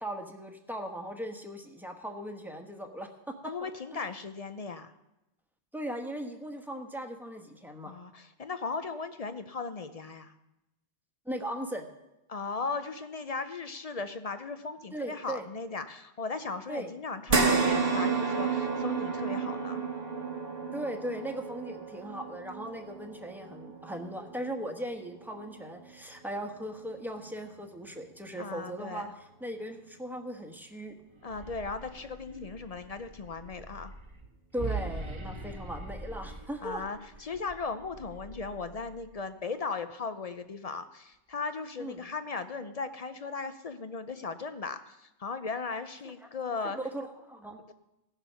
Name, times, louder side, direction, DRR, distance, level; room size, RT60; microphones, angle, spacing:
voice 1, 0.0-4.1 5.7-7.9 11.2-11.9 14.9-15.5 16.7-16.9 20.7-30.9 34.5-36.8 41.8-42.0 46.6-47.6, right 1 dB, ahead, 4 dB, 1.1 m, -38 dB
voice 2, 3.4-4.9 7.9-10.3 12.3-19.8 28.4-29.1 31.2-33.9 36.6-46.8 47.7-47.8, left 4 dB, 45° left, 10 dB, 0.5 m, -37 dB
sound 1, 17.3-25.9 26.3-26.5 27.9-28.0, right 4 dB, 60° right, 1.2 m, -31 dB
sound 2, 31.1-39.3, right 3 dB, 30° right, 1.0 m, -42 dB
16.5 x 7.0 x 5.6 m, 0.93 s
omnidirectional pair, 1.1 m